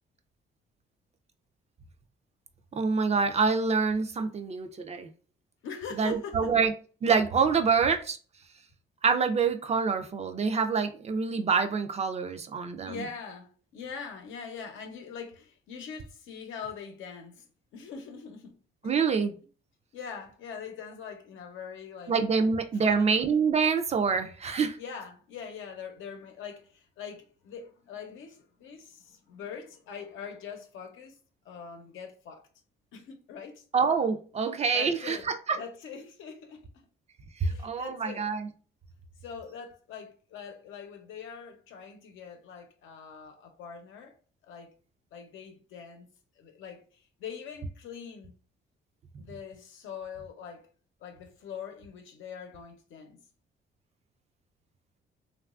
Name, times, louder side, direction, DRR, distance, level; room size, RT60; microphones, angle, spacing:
voice 1, 2.8-5.1 6.0-6.7 7.0-8.2 9.0-13.1 18.8-19.3 22.1-24.8 33.7-35.6 37.4-38.5, right 5 dB, 35° right, 0.4 m, -26 dB
voice 2, 5.6-6.6 12.8-17.5 17.7-18.6 18.8-18.9 19.9-22.2 22.7-23.2 24.8-31.2 31.4-32.4 32.9-33.6 34.4-36.7 37.4-38.3 39.2-44.1 44.4-44.7 45.1-46.1 46.4-46.8 47.2-48.3 49.2-50.7 51.0-53.2, left 6 dB, 85° left, 0.7 m, -43 dB
3.0 x 2.3 x 2.4 m
cardioid pair, 90°, 20 cm